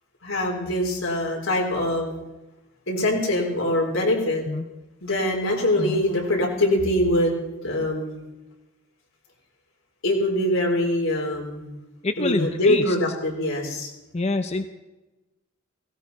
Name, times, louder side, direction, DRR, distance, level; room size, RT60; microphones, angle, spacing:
voice 1, 0.2-2.1 2.9-4.4 5.0-8.2 10.0-11.7 12.2-13.9, left 1 dB, 80° left, 0 dB, 4.0 m, -23 dB
voice 2, 12.0-12.9 14.1-14.7, left 2 dB, 30° left, 7 dB, 0.6 m, -26 dB
17.5 x 17.0 x 4.2 m, 1.1 s
head